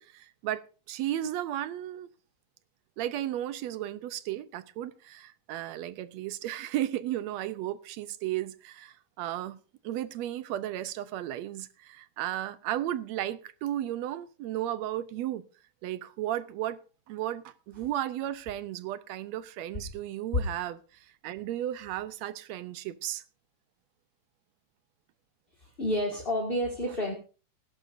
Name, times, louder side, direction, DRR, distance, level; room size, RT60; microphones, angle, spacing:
voice 1, 0.0-2.1 3.0-9.6 9.8-15.4 15.8-16.8 17.1-20.8 21.2-23.2, right 12 dB, 75° right, 1.8 m, -34 dB
voice 2, 25.6-27.1, equal, 20° left, 1.8 m, -30 dB
19.5 x 11.0 x 2.6 m
omnidirectional pair, 3.4 m